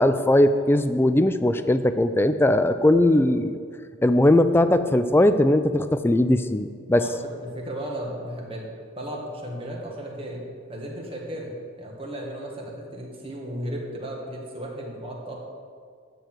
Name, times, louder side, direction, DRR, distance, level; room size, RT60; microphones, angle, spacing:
voice 1, 0.0-3.6 4.0-7.0, left 1 dB, 10° left, 10 dB, 0.3 m, -19 dB
voice 2, 7.4-8.7 8.9-15.3, equal, 25° right, -1 dB, 1.7 m, -35 dB
12.0 x 4.6 x 7.8 m, 2.1 s
head